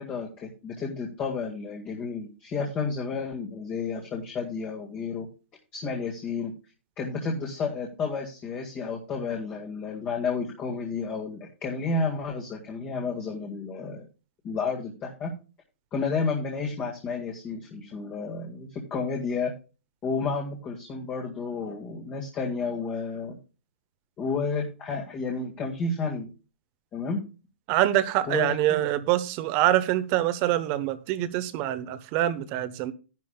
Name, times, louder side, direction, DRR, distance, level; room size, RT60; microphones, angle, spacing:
voice 1, 0.0-5.3 5.7-6.5 7.0-14.1 14.4-15.3 15.9-19.5 20.0-23.4 24.2-26.3 26.9-27.2 28.3-28.9, left 4 dB, 20° left, 1.8 m, -31 dB
voice 2, 27.7-32.9, right 13 dB, 30° right, 1.0 m, -25 dB
12.5 x 10.5 x 2.3 m
hypercardioid pair, 150°, 7 cm